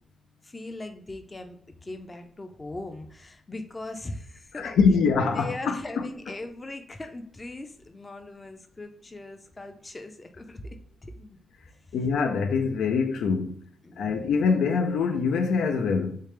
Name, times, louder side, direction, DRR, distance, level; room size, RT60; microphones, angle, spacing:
voice 1, 0.4-4.8 5.3-11.4 13.8-14.2, left 2 dB, 20° left, 0.5 m, -40 dB
voice 2, 4.6-6.1 11.9-13.6 14.0-16.2, left 5 dB, 90° left, 0.4 m, -24 dB
3.3 x 3.2 x 3.1 m
cardioid pair, 135°, 0 cm